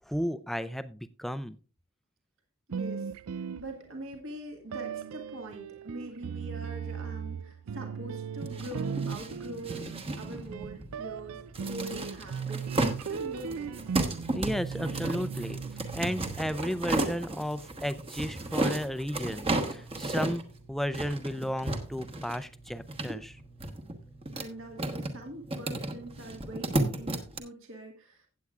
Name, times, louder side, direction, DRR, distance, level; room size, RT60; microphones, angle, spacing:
voice 1, 0.1-1.6 9.8-9.9 10.3-10.4 14.3-15.6 15.9-23.4, equal, ahead, 12 dB, 0.4 m, -34 dB
voice 2, 2.7-9.9 10.2-14.0 24.3-28.3, right 1 dB, 60° right, 2 dB, 1.7 m, -43 dB
sound 1, 2.7-4.2 4.7-16.9, right 6 dB, 85° right, 0.4 m, -38 dB
sound 2, 8.4-27.4, right 2 dB, 25° right, 1.0 m, -34 dB
15.5 x 8.4 x 2.4 m, 0.36 s
head